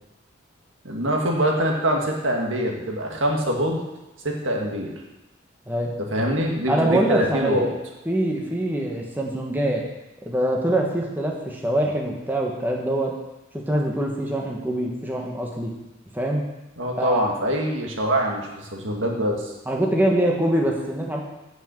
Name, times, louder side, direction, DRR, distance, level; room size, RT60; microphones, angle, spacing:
voice 1, 0.8-3.8 4.2-4.9 6.0-7.7 16.8-19.5, equal, 85° right, 0 dB, 1.7 m, -24 dB
voice 2, 6.7-7.7 8.0-9.8 10.2-13.2 13.5-15.7 16.1-16.4 17.0-17.3 19.7-21.2, right 1 dB, 10° right, -1 dB, 1.2 m, -24 dB
8.0 x 6.0 x 7.4 m, 1.0 s
head